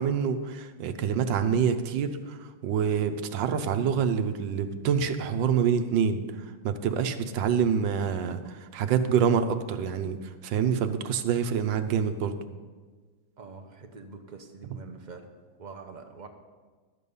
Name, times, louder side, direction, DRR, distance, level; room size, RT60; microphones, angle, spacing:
voice 1, 0.0-2.4 2.6-10.2 10.4-12.3, right 7 dB, 80° right, 8 dB, 1.4 m, -26 dB
voice 2, 13.4-15.3 15.6-16.3, right 4 dB, 40° right, 3 dB, 0.7 m, -45 dB
12.0 x 8.3 x 5.4 m, 1.4 s
omnidirectional pair, 2.0 m